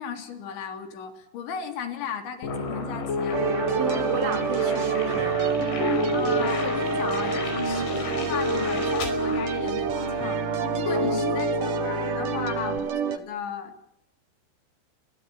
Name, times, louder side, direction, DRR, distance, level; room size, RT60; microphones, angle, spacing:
voice 1, 0.0-3.5 6.1-10.4 10.7-13.8, left 7 dB, 70° left, 6 dB, 5.4 m, -35 dB
Piano, 2.4-12.8, left 4 dB, 40° left, 2.9 m, -31 dB
sound 1, 2.5-10.3, left 5 dB, 90° left, 7.4 m, -36 dB
sound 2, 3.3-13.2, right 7 dB, 55° right, 2.7 m, -28 dB
voice 2, 3.8-5.4 10.9-11.4, right 6 dB, 80° right, 8 dB, 5.1 m, -33 dB
29.0 x 22.5 x 6.9 m, 0.76 s
omnidirectional pair, 5.5 m